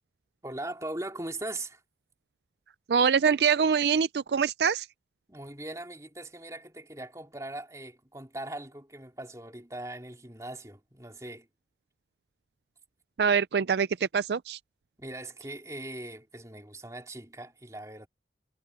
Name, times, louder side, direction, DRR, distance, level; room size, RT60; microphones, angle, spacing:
voice 1, 0.4-1.8 5.3-11.5 15.0-18.1, right 1 dB, 20° right, 3.3 m, -40 dB
voice 2, 2.9-4.9 13.2-13.9 14.1-14.6, right 6 dB, 70° right, 0.4 m, -24 dB
head